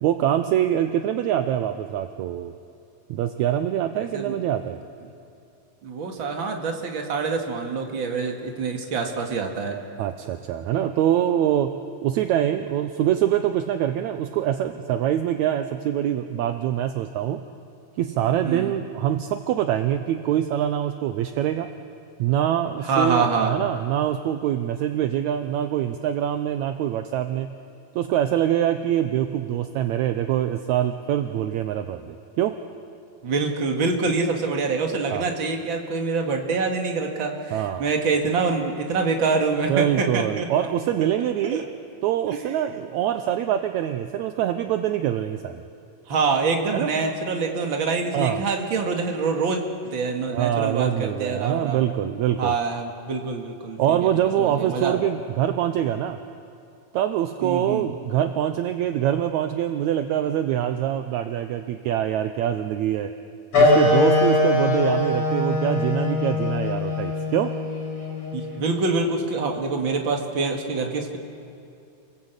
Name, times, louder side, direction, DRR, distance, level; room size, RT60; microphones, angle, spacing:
voice 1, 0.0-2.5 3.1-4.8 10.0-17.4 18.0-21.7 22.2-27.6 28.0-32.6 35.1-35.3 37.5-37.9 39.7-41.6 42.0-45.6 46.7-46.9 48.1-48.4 50.3-52.6 53.8-56.2 56.9-63.1 63.6-67.5, right 11 dB, 75° right, 8 dB, 1.8 m, -24 dB
voice 2, 3.9-4.4 5.8-9.8 18.4-18.7 22.8-23.5 33.2-40.7 41.5-41.6 42.3-42.4 46.1-49.6 49.9-51.8 52.4-54.0 54.4-55.0 57.4-57.9 68.3-71.2, right 4 dB, 40° right, 2 dB, 2.3 m, -25 dB
sound 1, 63.5-68.6, left 2 dB, 50° left, 7.8 m, -22 dB
28.5 x 19.5 x 8.2 m, 2.6 s
omnidirectional pair, 3.9 m